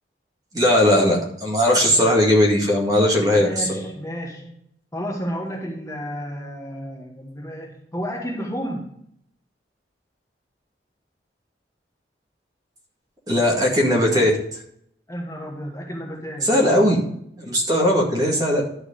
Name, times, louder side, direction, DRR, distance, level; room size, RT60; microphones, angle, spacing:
voice 1, 0.5-3.7 13.3-14.4 16.4-17.0 17.4-18.6, left 1 dB, 20° right, -1 dB, 2.0 m, -18 dB
voice 2, 3.3-4.6 4.9-9.0 15.1-16.9, equal, 20° left, -1 dB, 1.5 m, -32 dB
11.5 x 4.7 x 5.2 m, 0.70 s
head